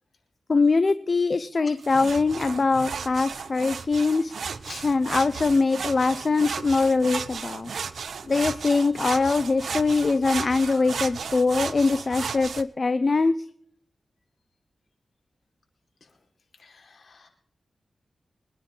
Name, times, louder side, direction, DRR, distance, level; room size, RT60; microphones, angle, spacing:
voice 1, 0.5-4.3 4.8-7.7 8.3-13.3, left 3 dB, 45° left, 12 dB, 0.7 m, -22 dB
sound 1, 1.8-12.6, right 6 dB, 80° right, 0.9 m, -34 dB
voice 2, 16.5-17.3, left 4 dB, 65° left, 1 dB, 4.9 m, -45 dB
25.0 x 9.9 x 3.9 m, 0.66 s
wide cardioid pair, 95°, 0 cm